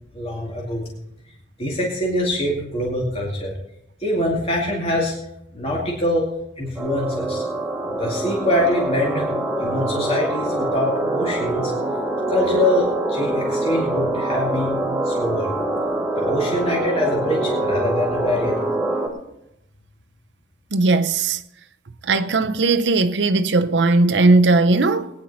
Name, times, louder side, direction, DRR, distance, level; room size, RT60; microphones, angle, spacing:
voice 1, 0.1-0.9 1.6-3.5 4.0-5.1 5.5-6.3 6.6-7.5 7.9-9.3 9.6-11.7 12.3-15.6 16.2-18.6, left 1 dB, 35° left, 2.3 m, -24 dB
sound 1, 6.8-19.1, right 2 dB, 5° right, 2.3 m, -24 dB
voice 2, 20.7-21.4 22.0-25.1, right 3 dB, 85° right, 0.8 m, -18 dB
19.0 x 9.9 x 4.2 m
head